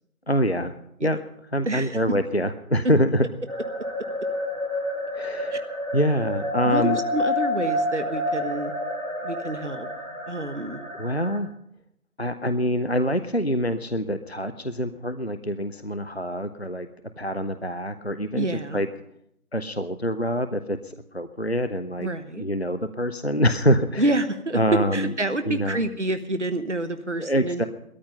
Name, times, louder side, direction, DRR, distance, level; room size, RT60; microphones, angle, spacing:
voice 1, 0.3-0.7 1.0-1.2 1.5-3.3 5.1-5.6 5.9-7.0 11.0-11.5 12.2-16.9 17.2-18.9 19.5-22.1 22.4-24.1 24.5-25.1 25.5-25.8 27.2-27.7, equal, 45° left, 11 dB, 0.6 m, -25 dB
voice 2, 1.6-2.0 5.5-5.6 6.7-8.7 9.2-9.9 10.3-10.9 18.3-18.8 22.0-22.4 24.0-27.7, right 2 dB, 55° right, 10 dB, 1.1 m, -28 dB
sound 1, 3.5-11.4, left 1 dB, 35° right, 2.5 m, -29 dB
18.0 x 13.5 x 5.5 m, 0.75 s
figure-of-eight pair, 180°, 44 cm